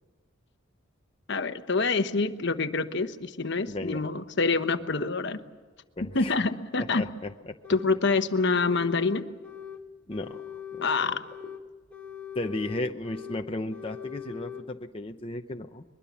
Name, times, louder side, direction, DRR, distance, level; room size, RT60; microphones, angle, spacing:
voice 1, 1.3-5.4 6.0-7.0 7.7-9.3 10.8-11.2, left 4 dB, 60° left, 10 dB, 1.1 m, -26 dB
voice 2, 3.7-4.1 6.0-6.4 6.8-7.6 8.7-8.8 10.1-11.2 12.3-15.8, left 2 dB, 25° left, 4 dB, 0.8 m, -35 dB
sound 1, 7.6-8.0 8.3-9.8 10.1-11.6 11.9-13.4 13.7-14.6, left 9 dB, 10° left, 1.5 m, -41 dB
22.5 x 22.0 x 7.2 m, 1.4 s
head